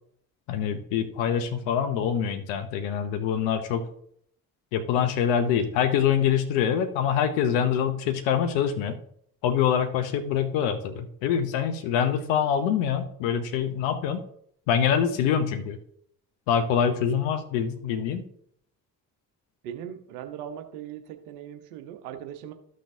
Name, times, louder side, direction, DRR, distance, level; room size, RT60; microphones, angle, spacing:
voice 1, 0.5-3.9 4.7-9.0 9.4-14.2 14.7-15.8 16.5-18.3, left 8 dB, 70° left, 8 dB, 0.9 m, -25 dB
voice 2, 19.6-22.5, right 9 dB, 75° right, 8 dB, 1.0 m, -39 dB
13.0 x 6.3 x 2.7 m, 0.67 s
figure-of-eight pair, 40°, 46 cm